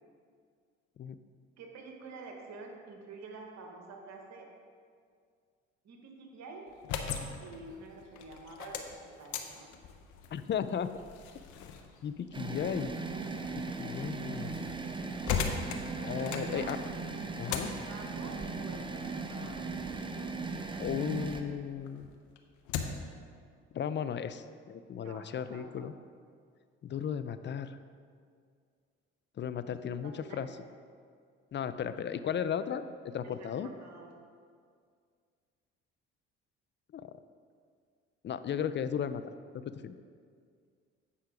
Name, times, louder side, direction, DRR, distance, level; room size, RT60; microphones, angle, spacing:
voice 1, 1.6-4.5 5.8-6.7 7.4-9.7 15.9-16.8 17.9-19.6 25.0-25.9 30.0-30.5 33.2-34.1, right 3 dB, 60° right, 2 dB, 1.3 m, -48 dB
sound 1, 6.7-21.4 21.8-23.2, left 6 dB, 70° left, 0.8 m, -41 dB
voice 2, 10.3-10.9 12.0-12.9 13.6-14.6 16.0-16.8 17.4-17.7 20.8-22.1 23.7-25.9 26.8-27.8 29.4-30.5 31.5-33.7 36.9-37.0 38.2-39.2 39.6-39.9, left 8 dB, 35° left, 12 dB, 0.5 m, -35 dB
sound 2, 12.3-21.4, right 3 dB, 15° right, 0.7 m, -38 dB
8.3 x 5.7 x 4.9 m, 2.1 s
hypercardioid pair, 65°, 30 cm